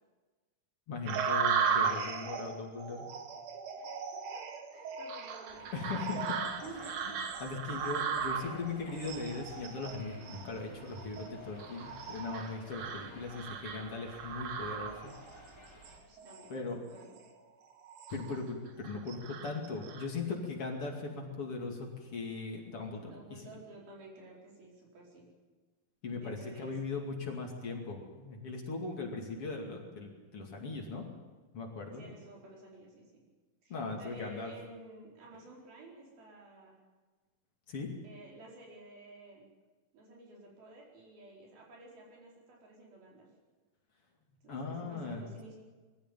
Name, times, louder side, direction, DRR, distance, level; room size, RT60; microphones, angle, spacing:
voice 1, 0.9-3.1 5.7-6.4 7.0-7.1 7.4-15.1 16.5-16.8 18.1-23.4 26.0-31.1 31.5-32.0 33.7-34.5 37.7-37.9 44.5-45.2, left 4 dB, 45° left, 1 dB, 3.1 m, -39 dB
sound 1, 1.1-15.4 15.8-16.5 17.0-17.2 17.7-18.4 18.8-20.1, right 6 dB, 65° right, 2.8 m, -36 dB
voice 2, 4.3-5.9 6.6-7.3 12.8-13.1 16.1-17.1 23.0-25.3 26.2-26.7 31.9-33.2 33.6-36.8 38.0-39.5 39.9-43.3 44.4-45.6, right 2 dB, 90° right, -3 dB, 6.6 m, -52 dB
sound 2, 5.5-16.0, equal, 5° left, 4.3 m, -54 dB
22.0 x 14.5 x 9.1 m, 1.3 s
omnidirectional pair, 4.1 m